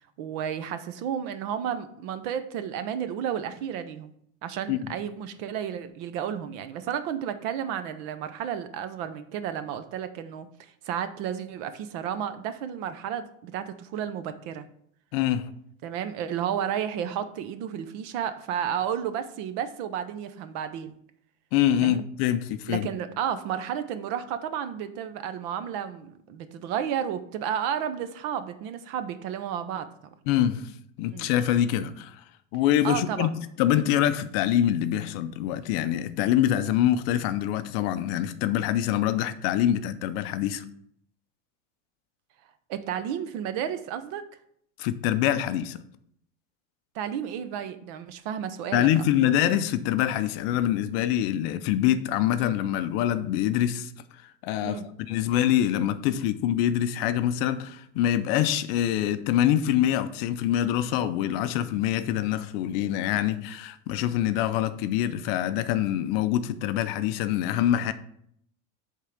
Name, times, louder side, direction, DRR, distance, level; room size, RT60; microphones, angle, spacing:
voice 1, 0.2-4.1 4.4-10.5 10.8-14.7 15.8-20.9 21.8-22.0 22.7-29.9 31.1-31.3 32.8-33.3 42.7-44.2 46.9-49.0 54.6-54.8, right 9 dB, 45° right, 0.7 m, -32 dB
voice 2, 15.1-15.5 21.5-22.9 30.3-30.7 31.0-32.2 32.5-40.6 44.8-45.8 48.7-53.9 54.4-54.8 55.1-67.9, left 11 dB, 50° left, 0.5 m, -25 dB
8.3 x 3.7 x 5.8 m
supercardioid pair, 160°, 41 cm